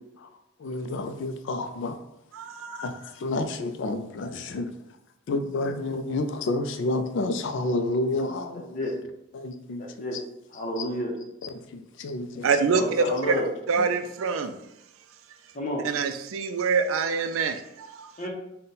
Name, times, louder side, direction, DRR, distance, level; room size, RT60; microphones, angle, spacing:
voice 1, 0.6-2.0 2.7-4.7 5.3-8.8 9.3-9.8 10.8-10.9 11.4-12.5 13.8-13.9, left 2 dB, 60° left, 8 dB, 0.3 m, -30 dB
voice 2, 2.3-2.9 12.4-13.3 13.7-14.6 15.8-18.1, right 5 dB, 70° right, 8 dB, 0.4 m, -25 dB
voice 3, 9.8-10.2 10.5-11.1 12.7-13.5 15.5-15.8 18.2-18.3, left 1 dB, 35° left, 1 dB, 0.7 m, -30 dB
3.9 x 2.2 x 3.9 m, 0.85 s
head